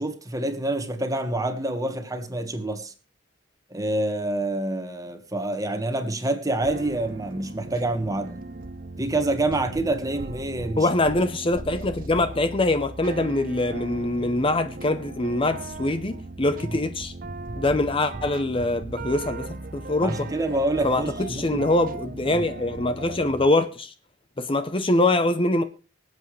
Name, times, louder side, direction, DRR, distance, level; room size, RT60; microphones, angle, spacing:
voice 1, 0.0-2.9 3.7-8.4 9.0-10.9 20.0-21.6 22.3-22.4, right 2 dB, 20° right, 1.5 m, -27 dB
sound 1, 6.6-23.5, right 2 dB, 45° right, 0.9 m, -37 dB
voice 2, 10.8-17.1 17.6-20.3 20.8-23.9 24.4-25.6, left 2 dB, 30° left, 0.7 m, -24 dB
24.5 x 8.1 x 3.3 m
head